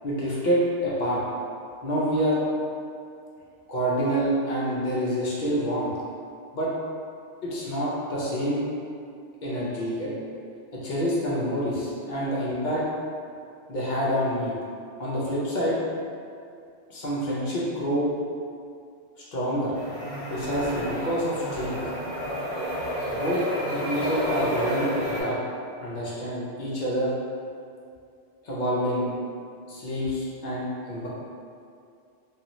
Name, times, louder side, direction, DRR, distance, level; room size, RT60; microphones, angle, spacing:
voice 1, 0.0-1.2 1.8-2.4 3.7-5.9 6.5-6.7 7.4-8.6 9.4-10.1 10.7-12.8 13.7-14.5 15.0-15.8 16.9-18.1 19.3-19.7 20.3-21.8 23.2-25.4 25.8-27.1 28.4-29.1 29.7-31.1, equal, 55° left, -6 dB, 0.6 m, -27 dB
sound 1, 19.7-25.2, equal, 35° right, 0.7 m, -30 dB
2.6 x 2.4 x 2.9 m, 2.4 s
omnidirectional pair, 1.2 m